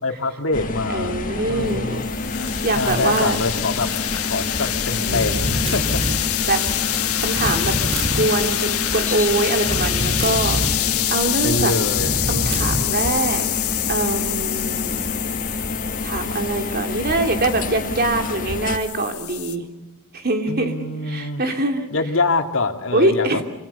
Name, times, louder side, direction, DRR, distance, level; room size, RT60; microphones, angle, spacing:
voice 1, 0.0-1.2 1.5-2.1 2.7-3.9 4.3-6.0 11.4-12.1 20.5-21.4 21.9-23.4, left 3 dB, 60° left, 4 dB, 2.6 m, -24 dB
sound 1, 0.5-18.8, left 2 dB, 40° left, 2.1 m, -29 dB
voice 2, 0.9-2.0 2.6-3.4 5.0-5.6 6.5-6.6 7.2-7.8 8.1-11.7 12.3-13.4 13.9-15.4 16.0-19.7 20.1-20.7 21.1-21.9 22.9-23.4, right 2 dB, 45° right, 5 dB, 3.0 m, -23 dB
sound 2, 1.4-19.6, left 13 dB, 85° left, 1.9 m, -26 dB
sound 3, 5.1-6.2 7.4-8.3 9.6-10.8 12.0-12.8, equal, 30° right, 3.5 m, -25 dB
26.5 x 26.0 x 6.8 m, 1.0 s
head